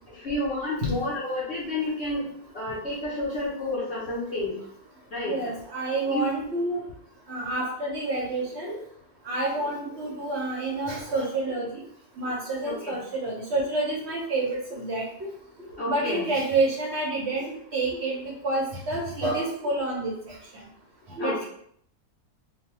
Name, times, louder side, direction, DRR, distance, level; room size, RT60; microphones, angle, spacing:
voice 1, 0.1-2.2 2.5-4.5 5.1-5.3 6.1-6.2 12.6-13.0 15.8-16.2 21.2-21.4, left 1 dB, 55° left, -8 dB, 0.9 m, -30 dB
voice 2, 5.3-6.8 7.3-8.8 9.3-11.7 12.2-15.0 15.9-18.2 18.4-20.1 21.2-21.4, right 2 dB, 60° right, -3 dB, 0.7 m, -28 dB
3.0 x 2.2 x 2.9 m, 0.66 s
omnidirectional pair, 1.6 m